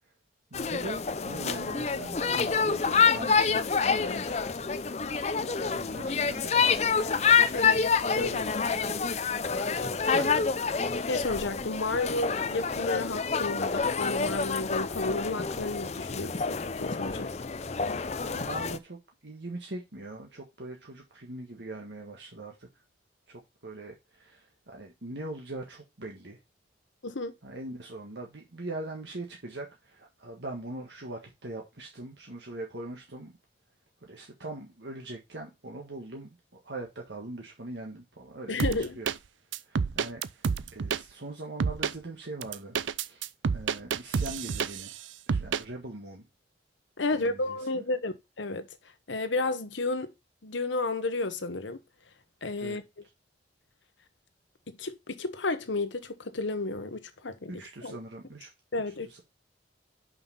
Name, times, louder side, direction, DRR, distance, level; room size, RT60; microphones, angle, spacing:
sound 1, 0.5-18.8, left 5 dB, 35° left, 0.5 m, -27 dB
voice 1, 0.5-3.6 5.3-6.8 8.1-9.0 10.0-10.4 18.3-22.8 23.3-26.4 27.4-33.3 34.0-39.1 39.6-42.8 43.0-43.3 43.5-44.9 45.3-46.3 47.1-47.8 52.6-52.8 57.5-58.5 59.0-59.2, right 2 dB, 70° right, 1.5 m, -41 dB
voice 2, 9.6-10.0 11.1-17.3 27.0-27.3 38.5-39.0 47.0-48.7 49.1-50.1 50.4-51.8 52.4-52.8 54.7-57.5 57.8-57.9 58.7-59.1, left 2 dB, 85° left, 1.0 m, -32 dB
sound 2, 38.6-39.2 39.5-41.0 41.6-41.9 42.4-45.0 45.3-45.6, right 5 dB, 90° right, 0.5 m, -29 dB
5.7 x 5.7 x 5.4 m
head